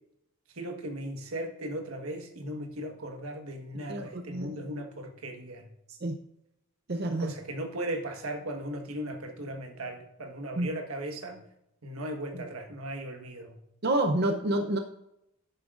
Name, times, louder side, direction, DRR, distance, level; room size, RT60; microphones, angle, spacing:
voice 1, 0.5-5.6 7.2-11.4 11.8-13.6, right 1 dB, 85° right, 4 dB, 1.4 m, -37 dB
voice 2, 3.9-4.6 5.9-6.2 6.9-7.3 10.6-10.8 12.3-12.5 13.8-14.8, right 1 dB, 50° right, 5 dB, 0.6 m, -29 dB
11.0 x 9.8 x 2.5 m, 0.82 s
head